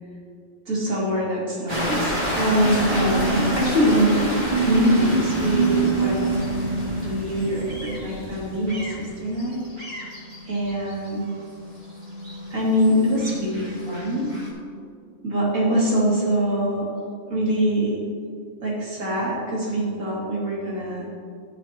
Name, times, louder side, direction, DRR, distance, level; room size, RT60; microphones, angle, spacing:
voice 1, 0.7-4.2 4.7-6.4 7.0-9.6 10.4-11.2 12.5-14.3 15.2-16.9 17.3-18.0 18.6-21.2, equal, 80° right, -5 dB, 2.8 m, -23 dB
sound 1, 1.7-14.5, right 2 dB, 35° right, 2.0 m, -27 dB
11.5 x 9.6 x 2.8 m, 2.3 s
omnidirectional pair, 1.4 m